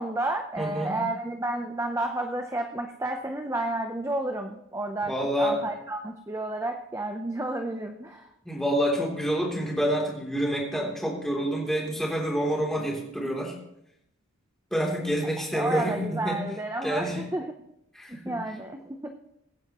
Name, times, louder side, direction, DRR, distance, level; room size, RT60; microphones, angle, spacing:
voice 1, 0.0-8.3 15.2-17.5 18.2-19.1, right 2 dB, 15° right, 4 dB, 0.7 m, -31 dB
voice 2, 0.6-1.0 5.1-5.6 8.4-13.5 14.7-16.4 16.8-17.2 17.9-18.4, equal, ahead, -2 dB, 3.2 m, -28 dB
23.5 x 9.7 x 3.1 m, 0.79 s
head